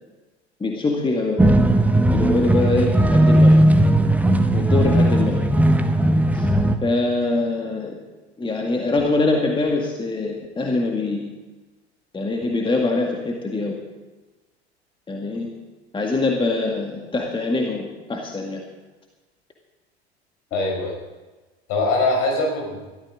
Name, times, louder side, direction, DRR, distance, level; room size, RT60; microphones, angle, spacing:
voice 1, 0.6-1.4 2.1-3.6 4.5-5.4 6.3-6.5 6.8-8.0 8.4-11.3 12.1-13.8 15.1-15.5 15.9-18.6, left 3 dB, 15° left, 1 dB, 2.1 m, -23 dB
sound 1, 1.4-6.8, right 1 dB, 5° right, 1.1 m, -17 dB
voice 2, 20.5-21.0 21.7-22.8, left 2 dB, 55° left, 1 dB, 5.8 m, -22 dB
21.5 x 14.0 x 3.8 m, 1.2 s
figure-of-eight pair, 75°, 33 cm